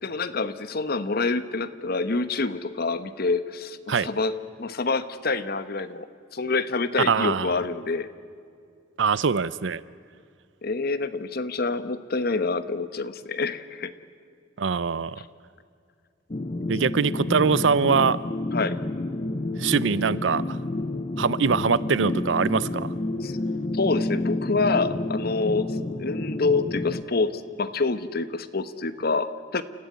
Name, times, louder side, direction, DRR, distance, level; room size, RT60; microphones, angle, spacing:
voice 1, 0.0-8.1 10.6-13.9 16.6-16.7 18.5-18.8 23.2-23.4 23.7-29.6, left 3 dB, 55° left, 12 dB, 1.1 m, -27 dB
voice 2, 7.1-7.6 9.0-9.8 14.6-15.2 16.7-18.2 19.6-20.6 21.2-22.9, right 5 dB, 75° right, 19 dB, 0.5 m, -23 dB
sound 1, 16.3-27.0, left 2 dB, 35° left, 0.8 m, -29 dB
29.5 x 14.5 x 9.4 m, 2.3 s
head